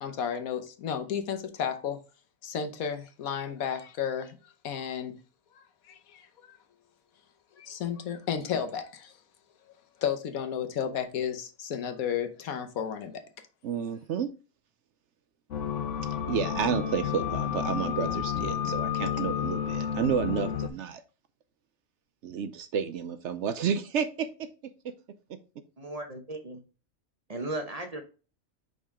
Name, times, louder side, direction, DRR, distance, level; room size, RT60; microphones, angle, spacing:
voice 1, 0.0-2.0 2.4-5.1 5.5-6.6 7.6-9.1 10.0-13.2, left 8 dB, 85° left, 1.3 m, -33 dB
voice 2, 13.6-14.3 16.0-21.0 22.2-24.9 25.3-25.4, right 7 dB, 65° right, 0.8 m, -31 dB
sound 1, 15.5-20.7, left 8 dB, 60° left, 1.2 m, -31 dB
voice 3, 25.8-26.6 27.3-28.0, right 2 dB, 35° right, 0.8 m, -36 dB
5.3 x 5.1 x 3.5 m
omnidirectional pair, 1.4 m